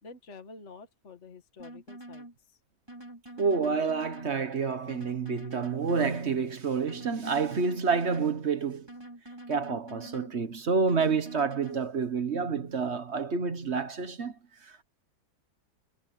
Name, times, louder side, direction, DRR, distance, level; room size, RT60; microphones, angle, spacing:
voice 1, 0.0-2.6, left 4 dB, 40° left, 2.1 m, -49 dB
sound 1, 1.6-2.3 2.9-4.3 4.9-6.3 6.9-8.3 8.9-10.3 10.9-11.8, right 1 dB, 15° right, 5.5 m, -45 dB
voice 2, 3.4-8.9 9.5-14.3 14.6-14.8, right 5 dB, 40° right, 1.4 m, -28 dB
omnidirectional pair, 1.9 m